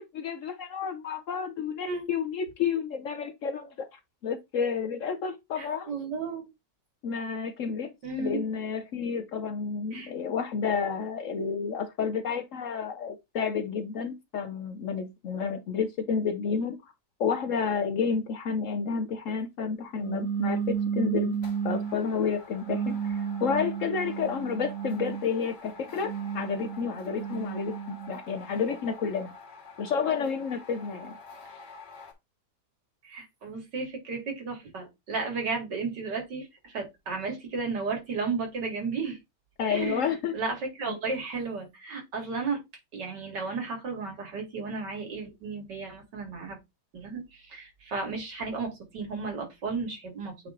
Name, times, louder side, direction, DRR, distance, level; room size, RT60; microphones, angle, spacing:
voice 1, 0.0-6.0 7.0-16.8 17.2-21.4 21.6-29.3 29.8-31.2 39.6-40.3 40.9-41.0, left 6 dB, 60° left, 0.9 m, -30 dB
voice 2, 5.6-6.5 8.0-8.4 9.9-10.1 33.0-39.2 39.7-40.0 40.3-42.6 42.9-46.6 46.9-50.3, right 4 dB, 85° right, 2.9 m, -33 dB
sound 1, 20.0-22.0 22.6-25.3 25.9-28.2, right 7 dB, 60° right, 1.3 m, -32 dB
sound 2, 20.5-20.8 21.3-32.1, left 3 dB, 85° left, 2.2 m, -48 dB
8.3 x 3.0 x 3.7 m
omnidirectional pair, 1.8 m